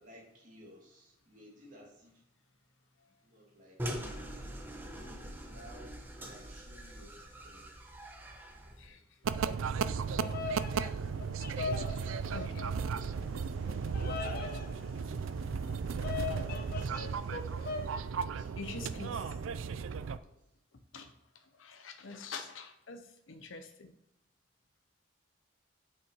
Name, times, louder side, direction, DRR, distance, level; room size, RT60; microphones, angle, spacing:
voice 1, 0.0-2.2 3.2-4.0 5.2-7.7 8.6-9.0 11.6-13.1 16.2-17.0 18.1-19.2 20.1-20.4 22.0-22.3, equal, 40° right, -3 dB, 2.7 m, -57 dB
sound 1, 3.8-8.9, equal, 10° right, 1.0 m, -43 dB
sound 2, 9.2-20.2, right 6 dB, 90° right, 0.4 m, -35 dB
Bird vocalization bird call bird song, 10.0-18.0, left 4 dB, 50° left, 0.9 m, -41 dB
voice 2, 18.5-19.2 20.9-21.1 21.5-23.9, left 4 dB, 80° left, 7 dB, 0.8 m, -45 dB
8.1 x 5.8 x 4.6 m, 0.86 s
head